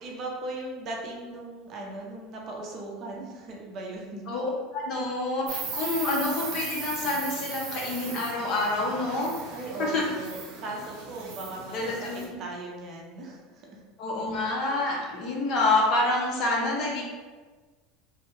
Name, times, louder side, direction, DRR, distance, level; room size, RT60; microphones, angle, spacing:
voice 1, 0.0-4.2 9.5-13.7, right 2 dB, 40° right, -1 dB, 0.6 m, -38 dB
voice 2, 4.3-9.3 9.8-10.0 11.7-12.4 14.0-17.0, left 2 dB, 45° left, -2 dB, 0.8 m, -27 dB
Insect, 5.5-12.3, right 5 dB, 65° right, 0.8 m, -38 dB
3.2 x 2.3 x 3.1 m, 1.4 s
supercardioid pair, 150°, 0 cm